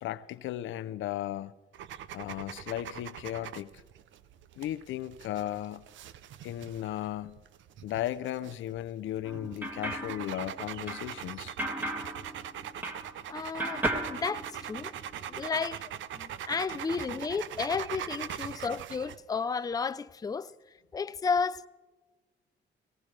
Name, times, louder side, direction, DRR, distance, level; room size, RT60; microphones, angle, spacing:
voice 1, 0.0-1.5 2.1-3.7 4.6-5.9 6.4-7.4 7.8-11.5 18.3-18.4, left 13 dB, 80° left, 0.6 m, -36 dB
sound 1, 1.7-19.2, right 10 dB, 70° right, 0.7 m, -42 dB
sound 2, 9.2-13.3 13.6-15.1, right 1 dB, 10° right, 1.8 m, -36 dB
voice 2, 13.3-14.9 15.3-15.8 16.1-20.5 20.9-21.7, left 5 dB, 20° left, 0.5 m, -32 dB
18.5 x 18.0 x 3.3 m
cardioid pair, 90°, 20 cm